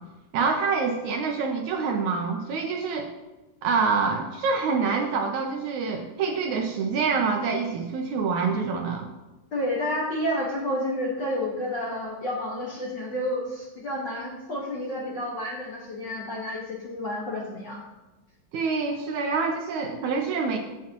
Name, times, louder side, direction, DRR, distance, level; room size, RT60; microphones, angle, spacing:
voice 1, 0.3-3.1 3.6-9.1 18.5-20.6, right 5 dB, 75° right, 3 dB, 1.9 m, -26 dB
voice 2, 9.5-17.8, left 1 dB, 50° left, -4 dB, 1.5 m, -30 dB
15.0 x 7.2 x 3.0 m, 1.1 s
omnidirectional pair, 3.9 m